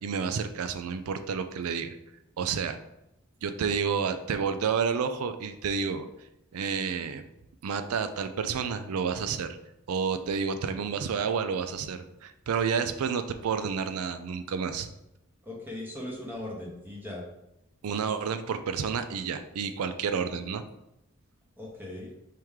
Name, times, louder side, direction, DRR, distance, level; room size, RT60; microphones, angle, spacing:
voice 1, 0.0-2.0 2.4-2.8 3.4-6.1 6.5-7.2 7.6-9.6 9.9-14.9 17.8-20.6, right 6 dB, 85° right, 9 dB, 0.4 m, -30 dB
voice 2, 15.4-17.2 21.6-22.1, left 1 dB, 10° right, -3 dB, 1.1 m, -39 dB
4.7 x 3.0 x 3.6 m, 0.87 s
head